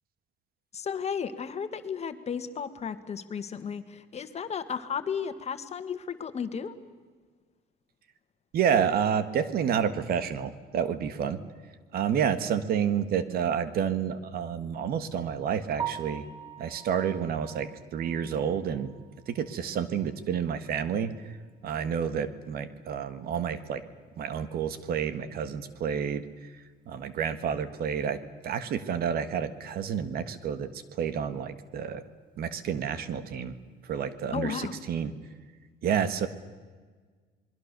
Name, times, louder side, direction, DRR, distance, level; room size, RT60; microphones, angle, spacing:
voice 1, 0.7-6.7 34.3-34.8, left 6 dB, 40° left, 10 dB, 1.7 m, -34 dB
voice 2, 8.5-11.4 11.9-16.2 16.6-18.9 19.3-21.1 21.6-23.8 24.2-26.5 26.9-28.2 28.4-32.0 32.4-33.5 33.8-35.1 35.8-36.3, right 8 dB, 65° right, 12 dB, 1.6 m, -29 dB
Piano, 15.8-19.7 20.1-20.2 20.7-20.8 21.2-21.3 24.4-24.5 32.9-33.2, right 9 dB, 25° right, 2.3 m, -41 dB
27.5 x 21.5 x 6.8 m, 1.5 s
cardioid pair, 110°, 17 cm